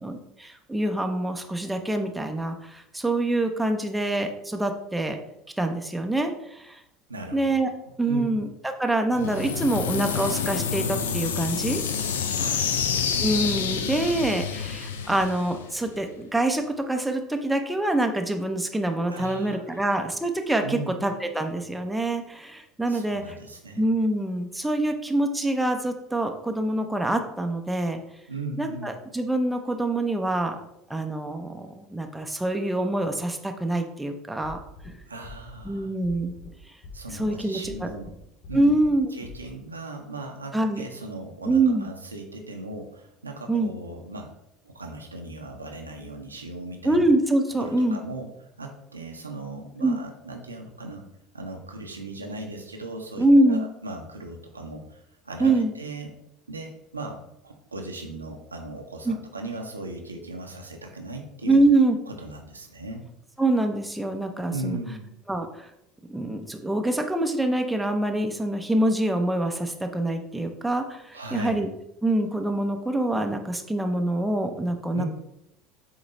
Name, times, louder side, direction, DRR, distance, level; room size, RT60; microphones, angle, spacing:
voice 1, 0.0-5.2 5.6-6.8 7.3-7.7 8.0-11.8 13.2-23.4 23.8-28.0 28.6-30.6 30.9-34.6 35.6-36.3 37.1-37.9 38.5-39.1 40.5-40.8 41.5-41.9 43.5-43.7 46.8-48.0 49.8-50.0 53.2-53.6 55.4-55.7 59.0-59.2 61.4-62.0 63.4-64.8 65.3-65.7 66.1-71.7 72.0-75.1, right 1 dB, 5° right, 4 dB, 0.8 m, -25 dB
voice 2, 7.1-7.5 8.1-8.4 12.3-12.8 19.1-19.8 20.6-21.0 22.9-23.8 28.3-28.9 35.1-35.9 36.9-38.1 38.5-38.7 39.1-44.3 44.6-47.0 47.6-51.0 51.3-56.1 56.5-61.6 62.1-63.0 64.5-65.1 71.1-71.6 74.9-75.1, right 2 dB, 85° right, 2 dB, 0.8 m, -37 dB
sound 1, 9.1-16.0, left 7 dB, 70° left, 0.5 m, -28 dB
sound 2, 34.4-34.9 35.2-35.7 36.0-36.5 36.8-37.3 37.6-38.1 38.4-38.9 39.2-39.3, left 4 dB, 55° left, 1.9 m, -43 dB
7.9 x 3.1 x 4.0 m, 0.81 s
figure-of-eight pair, 70°, 0 cm